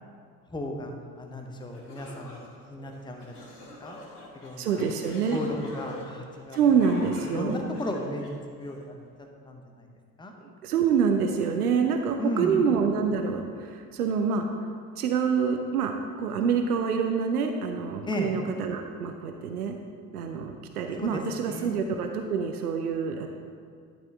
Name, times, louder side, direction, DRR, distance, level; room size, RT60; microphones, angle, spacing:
voice 1, 0.5-0.9 1.2-2.3 2.7-3.5 3.8-4.0 4.3-4.8 5.3-6.6 7.0-8.3 8.6-8.9 9.4-9.9 10.2-10.3 12.2-12.6 18.1-18.3 21.0-21.8, left 1 dB, 10° left, 3 dB, 0.9 m, -34 dB
sound 1, 1.3-1.4 1.7-8.8, left 2 dB, 75° left, 1.3 m, -45 dB
voice 2, 4.6-5.5 6.5-7.6 10.4-14.5 15.0-15.9 16.2-19.8 20.1-23.3, right 6 dB, 75° right, 5 dB, 0.6 m, -26 dB
11.5 x 4.2 x 3.6 m, 2.1 s
figure-of-eight pair, 60°, 46 cm